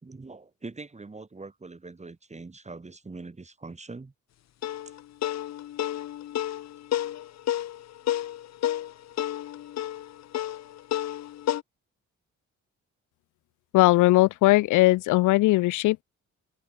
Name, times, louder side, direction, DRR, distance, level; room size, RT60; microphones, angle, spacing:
voice 1, 0.0-4.1, right 3 dB, 20° right, 4.5 m, -43 dB
sound 1, 4.6-11.6, left 12 dB, 60° left, 0.9 m, -31 dB
voice 2, 13.7-16.0, left 19 dB, 80° left, 0.5 m, -19 dB
cardioid pair, 90°, 30 cm